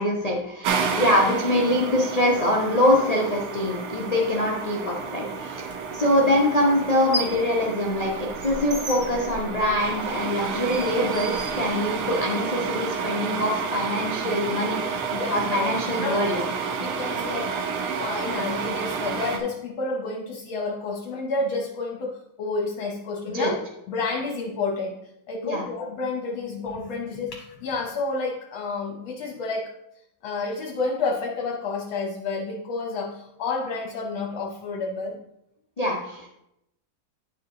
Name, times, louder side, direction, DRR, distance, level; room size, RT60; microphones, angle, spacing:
voice 1, 0.0-5.7 5.9-14.8 15.1-16.4 23.3-23.5 25.4-25.6 35.8-36.3, left 1 dB, 55° left, -3 dB, 0.4 m, -24 dB
sound 1, 0.6-19.4, right 5 dB, 90° right, 1.7 m, -30 dB
sound 2, 5.7-5.8 6.8-7.5 7.8-12.2, equal, 30° right, 1.0 m, -35 dB
voice 2, 15.1-15.7 16.0-16.4 16.7-17.5 18.0-23.6 23.9-25.0 25.3-29.7 30.2-35.2, left 3 dB, 70° left, 0 dB, 1.7 m, -30 dB
10.0 x 4.7 x 3.7 m, 0.82 s
omnidirectional pair, 2.3 m